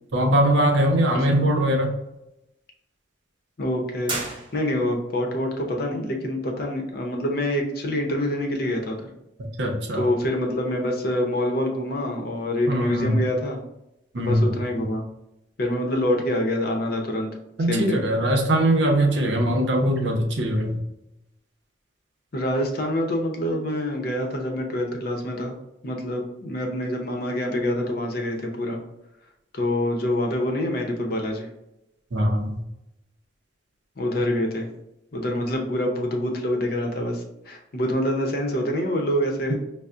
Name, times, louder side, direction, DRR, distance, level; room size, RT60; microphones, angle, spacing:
voice 1, 0.1-1.9 9.6-10.1 12.7-13.2 14.1-14.6 17.6-20.8 32.1-32.6, right 1 dB, 75° right, 3 dB, 0.7 m, -21 dB
voice 2, 3.6-9.1 9.9-13.6 14.2-15.0 15.6-17.3 17.7-18.0 22.3-25.5 25.8-28.8 29.5-31.5 34.0-34.7 35.1-39.6, left 1 dB, 55° left, 2 dB, 0.7 m, -26 dB
sound 1, 4.0-5.1, right 3 dB, 25° right, 0.7 m, -33 dB
5.4 x 2.0 x 2.4 m, 0.88 s
head